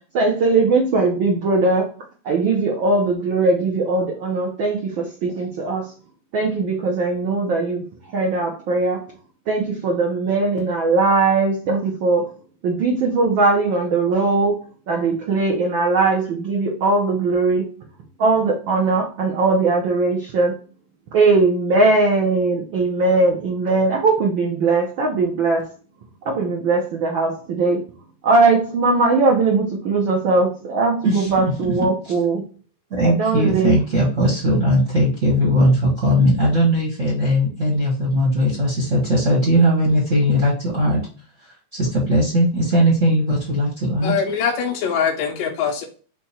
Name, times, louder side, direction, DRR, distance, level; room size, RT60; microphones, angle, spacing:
voice 1, 0.1-1.9 2.2-5.9 6.3-7.8 8.1-9.1 9.5-12.3 12.6-17.7 18.2-20.6 21.1-25.7 26.3-27.8 28.2-32.4 33.0-33.8, right 3 dB, 85° right, 0 dB, 1.0 m, -19 dB
voice 2, 31.0-31.7 32.0-32.1 32.9-41.0 41.4-44.1, equal, 40° right, -3 dB, 1.1 m, -19 dB
voice 3, 44.0-45.9, left 6 dB, 75° left, 2 dB, 1.8 m, -22 dB
5.1 x 2.3 x 4.2 m, 0.39 s
omnidirectional pair, 3.4 m